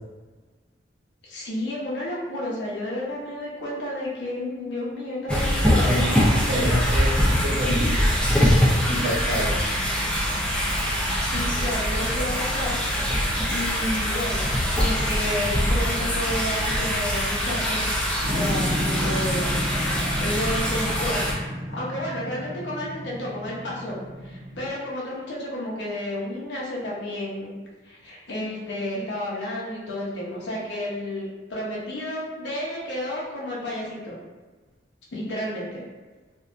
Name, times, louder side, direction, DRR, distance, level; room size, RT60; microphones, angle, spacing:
voice 1, 1.2-6.1 6.5-6.7 11.2-12.8 13.1-17.8 18.2-21.2 21.7-24.0 24.2-27.5 27.8-34.1 35.1-35.8, left 1 dB, 70° left, -5 dB, 0.6 m, -31 dB
sound 1, 5.3-21.3, equal, 5° left, 0.4 m, -23 dB
voice 2, 6.5-8.0 8.9-9.6, equal, 80° right, -5 dB, 0.8 m, -27 dB
sound 2, 18.2-24.7, equal, 45° right, 0.8 m, -31 dB
2.6 x 2.2 x 2.4 m, 1.3 s
head